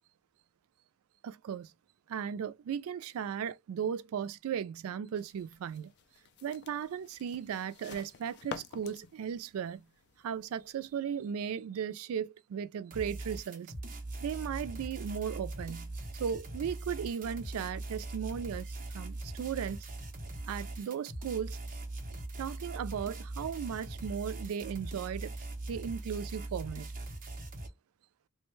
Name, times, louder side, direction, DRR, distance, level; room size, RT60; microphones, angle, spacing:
voice 1, 1.2-1.7 2.1-5.9 6.4-9.9 10.2-13.7 14.2-15.9 16.2-18.7 18.9-19.9 20.5-21.6 22.4-25.3 25.7-26.9, right 8 dB, 80° right, 0.3 m, -36 dB
sound 1, 5.2-11.0, left 6 dB, 50° left, 0.3 m, -50 dB
sound 2, 12.9-27.7, right 2 dB, 35° right, 0.7 m, -41 dB
2.9 x 2.2 x 3.0 m
head